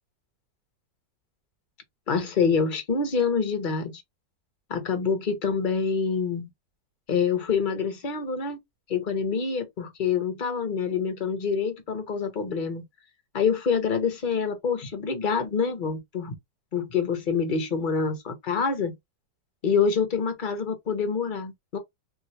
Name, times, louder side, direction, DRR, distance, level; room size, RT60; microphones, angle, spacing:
voice 1, 2.1-4.0 4.7-6.5 7.1-8.6 8.9-12.8 13.3-16.3 16.7-19.0 19.6-21.8, left 5 dB, 40° left, 0.7 m, -26 dB
2.9 x 2.8 x 2.7 m
omnidirectional pair, 1.9 m